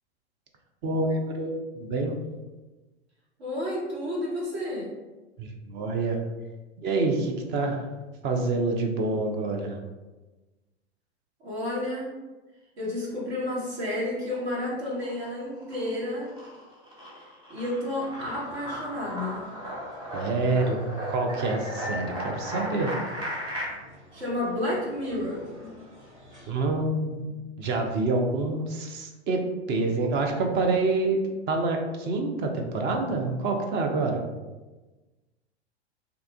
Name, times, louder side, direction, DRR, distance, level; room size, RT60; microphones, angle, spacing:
voice 1, 0.8-2.2 5.4-6.2 6.8-7.8 8.2-9.8 20.1-20.8 21.1-23.0 26.5-29.4 29.7-34.2, right 3 dB, 30° right, 3 dB, 0.5 m, -27 dB
voice 2, 3.4-4.9 11.4-12.1 12.8-16.3 17.5-19.5 24.1-25.7, left 1 dB, 65° right, -5 dB, 1.4 m, -31 dB
sound 1, 13.7-14.5 14.9-23.6, equal, 15° right, 1.3 m, -36 dB
sound 2, 18.1-26.5, left 1 dB, 90° right, 1.1 m, -47 dB
2.8 x 2.3 x 3.5 m, 1.2 s
hypercardioid pair, 95°, 34 cm